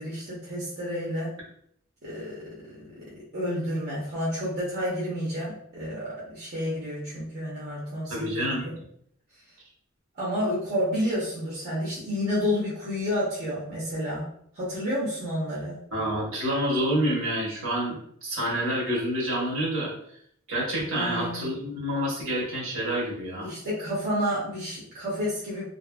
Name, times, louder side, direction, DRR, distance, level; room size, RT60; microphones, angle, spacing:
voice 1, 0.0-1.3 2.0-3.0 3.3-8.7 10.1-14.3 14.5-15.8 20.9-21.5 23.4-25.6, equal, 50° right, -7 dB, 0.8 m, -30 dB
voice 2, 8.1-8.6 15.9-18.0 18.2-19.9 20.5-23.5, equal, 65° right, -4 dB, 1.0 m, -28 dB
2.5 x 2.5 x 2.2 m, 0.68 s
head